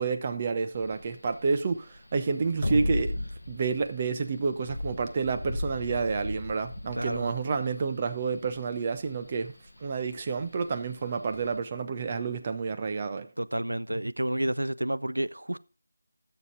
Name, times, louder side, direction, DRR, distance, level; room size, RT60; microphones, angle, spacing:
voice 1, 0.0-13.3, right 5 dB, 30° right, 0.9 m, -29 dB
sound 1, 0.7-11.6, left 1 dB, 80° left, 0.7 m, -36 dB
voice 2, 6.9-7.3 13.4-15.6, right 1 dB, 85° right, 0.5 m, -30 dB
14.0 x 6.9 x 3.8 m
figure-of-eight pair, 165°, 0 cm